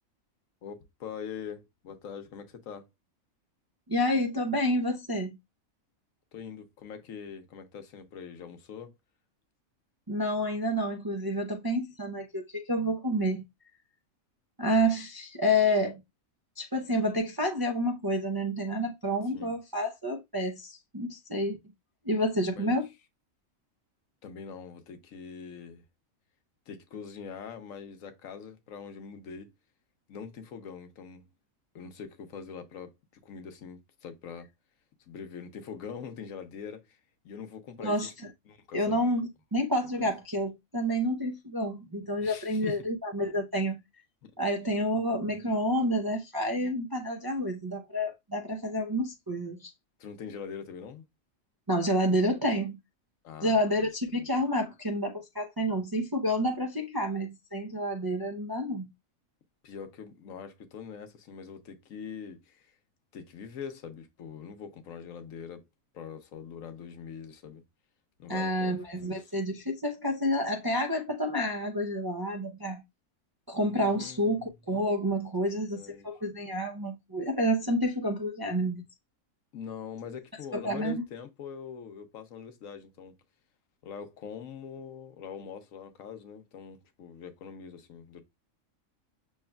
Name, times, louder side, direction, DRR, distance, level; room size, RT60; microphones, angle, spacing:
voice 1, 0.6-2.9 6.3-8.9 19.3-19.5 22.5-22.8 24.2-25.8 26.7-29.5 30.1-31.2 31.7-32.9 33.2-34.5 35.1-37.0 37.2-37.9 38.5-39.0 40.0-40.1 42.2-42.8 44.2-44.3 44.7-44.8 50.0-51.1 53.2-53.9 54.1-54.3 59.6-62.7 63.1-65.7 65.9-67.6 68.2-69.3 73.6-74.5 75.7-76.1 79.5-83.1 83.8-88.2, left 7 dB, 75° left, 1.1 m, -43 dB
voice 2, 3.9-5.4 10.1-13.4 14.6-16.0 16.6-21.6 22.0-22.9 37.8-38.1 38.7-43.8 44.4-49.7 51.7-52.8 53.4-58.9 68.3-72.8 73.5-78.9 80.5-81.0, equal, 35° right, 0.3 m, -29 dB
6.3 x 3.1 x 2.2 m
omnidirectional pair, 1.4 m